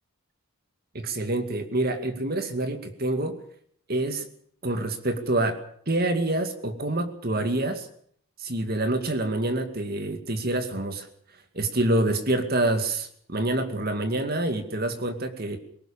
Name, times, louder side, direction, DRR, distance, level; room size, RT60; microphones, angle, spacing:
voice 1, 0.9-3.4 3.9-4.3 4.6-5.6 5.9-7.9 8.4-11.1 11.5-15.6, right 2 dB, 45° right, 8 dB, 2.3 m, -27 dB
21.0 x 18.5 x 7.2 m, 0.63 s
head